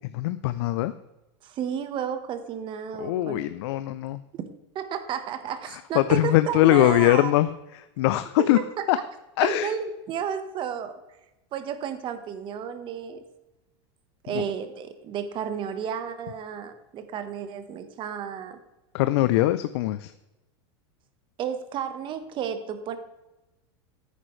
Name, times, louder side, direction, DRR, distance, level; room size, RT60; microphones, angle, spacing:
voice 1, 0.1-0.9 3.0-4.2 5.7-8.6 8.9-9.0 9.4-9.7 14.3-14.4 18.9-20.1, left 16 dB, 70° left, 12 dB, 0.5 m, -22 dB
voice 2, 1.4-3.4 4.7-7.3 8.4-8.5 8.8-9.0 9.4-11.0 11.5-13.2 14.2-18.6 21.4-23.0, right 8 dB, 35° right, 10 dB, 1.1 m, -32 dB
9.9 x 9.1 x 3.2 m, 1.0 s
supercardioid pair, 135°, 15 cm